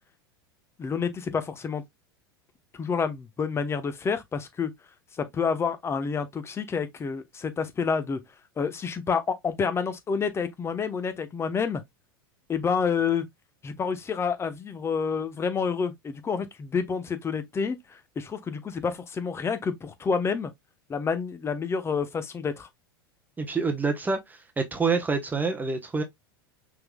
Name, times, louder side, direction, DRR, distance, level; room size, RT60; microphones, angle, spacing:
voice 1, 0.8-1.8 2.7-4.7 5.1-8.2 8.6-11.8 12.5-13.3 13.6-20.5 20.9-22.7, left 5 dB, 20° left, 1.0 m, -28 dB
voice 2, 23.4-26.0, right 4 dB, 15° right, 1.0 m, -27 dB
5.7 x 3.7 x 2.3 m
hypercardioid pair, 90°, 12 cm